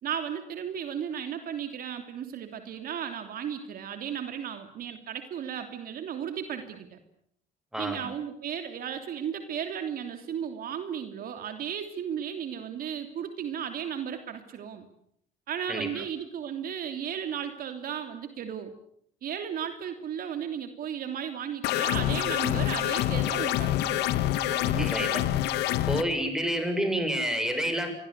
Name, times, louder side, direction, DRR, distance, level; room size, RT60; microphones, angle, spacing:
voice 1, 0.0-7.0 7.8-14.9 15.5-18.7 19.2-24.2 24.5-25.4, right 8 dB, 60° right, 7 dB, 3.1 m, -35 dB
voice 2, 7.7-8.0 15.7-16.0 24.8-25.2 25.9-27.9, equal, 5° right, 6 dB, 7.5 m, -29 dB
sound 1, 21.6-26.0, left 13 dB, 85° left, 1.5 m, -26 dB
28.0 x 23.0 x 8.3 m, 0.69 s
cardioid pair, 110°, 17 cm